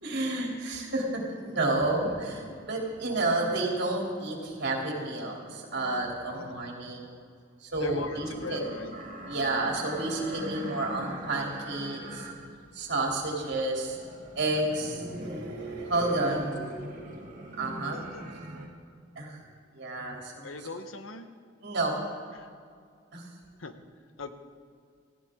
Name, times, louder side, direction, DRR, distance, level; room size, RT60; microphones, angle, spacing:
voice 1, 0.0-7.1 7.6-8.6 9.3-12.3 12.7-14.0 14.4-18.0 18.4-18.5 19.2-19.4 19.7-20.5 21.6-22.0 23.1-23.2, right 2 dB, 60° right, -1 dB, 3.1 m, -31 dB
voice 2, 7.8-8.9 17.9-18.2 20.4-21.3 22.3-22.5 23.6-23.7 24.2-24.3, left 3 dB, 90° left, 8 dB, 1.1 m, -40 dB
sound 1, 8.0-18.7, right 1 dB, 40° right, 1.9 m, -43 dB
18.5 x 15.5 x 3.7 m, 2.2 s
head